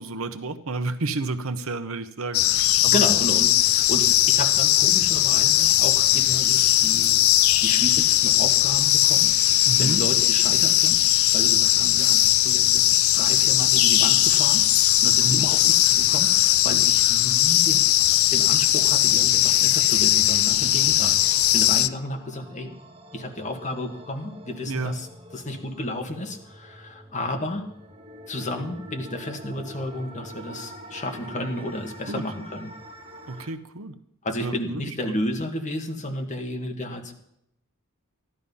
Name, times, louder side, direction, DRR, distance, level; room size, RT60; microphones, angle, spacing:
voice 1, 0.0-3.0 9.7-10.0 15.2-15.5 24.7-25.0 32.1-32.2 33.3-34.0 34.4-35.1, right 3 dB, 75° right, 10 dB, 1.0 m, -31 dB
sound 1, 2.3-21.9, left 14 dB, 80° left, 0.5 m, -19 dB
voice 2, 2.8-17.8 18.3-21.2 21.5-22.7 23.1-25.1 25.3-27.6 28.3-32.7 33.4-33.5 34.2-37.1, left 1 dB, 35° left, 3 dB, 1.8 m, -32 dB
sound 2, 19.3-33.5, equal, 25° right, 1.5 m, -45 dB
14.0 x 12.0 x 5.5 m, 0.75 s
head